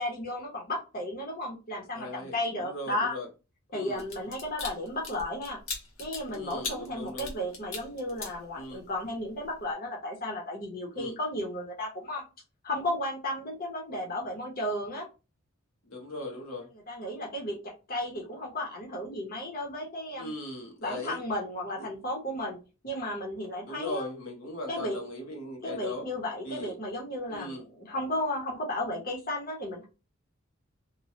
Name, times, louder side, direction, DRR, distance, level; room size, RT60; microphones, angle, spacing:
voice 1, 0.0-3.1 3.7-5.6 6.0-12.2 12.6-15.1 16.9-20.3 20.8-22.6 22.8-24.1 24.7-25.0 25.6-29.9, left 1 dB, 45° left, 0.9 m, -34 dB
voice 2, 1.9-3.3 3.7-4.1 6.3-7.3 8.5-8.8 10.9-11.2 15.8-16.7 20.2-21.2 21.8-21.9 23.7-26.1 26.4-26.7 27.3-27.6, left 1 dB, 90° left, 1.0 m, -39 dB
sound 1, 3.9-9.0 9.4-9.6, left 4 dB, 70° left, 1.0 m, -39 dB
3.1 x 2.2 x 2.7 m
head